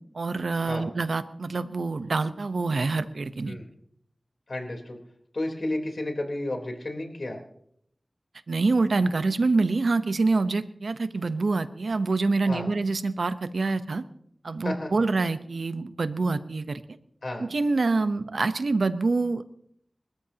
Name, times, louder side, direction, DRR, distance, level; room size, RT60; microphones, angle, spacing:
voice 1, 0.1-3.6 8.5-14.0 14.4-16.8 17.4-19.4, right 3 dB, 85° right, 11 dB, 0.9 m, -26 dB
voice 2, 4.5-5.0 5.3-7.4 12.4-12.7 14.6-14.9 17.2-17.5, left 1 dB, 65° left, 3 dB, 3.7 m, -32 dB
29.5 x 14.0 x 2.9 m, 0.68 s
wide cardioid pair, 45°, 0 cm